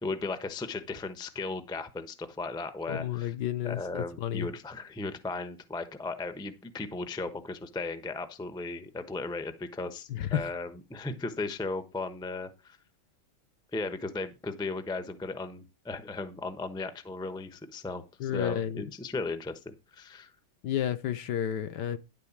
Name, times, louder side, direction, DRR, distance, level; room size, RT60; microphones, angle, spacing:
voice 1, 0.0-3.3 3.6-12.8 13.7-20.3, left 3 dB, 5° left, 0.5 m, -36 dB
voice 2, 2.9-4.5 10.1-10.5 18.2-18.8 20.6-22.0, left 10 dB, 70° left, 1.3 m, -31 dB
11.5 x 4.0 x 7.2 m
omnidirectional pair, 2.1 m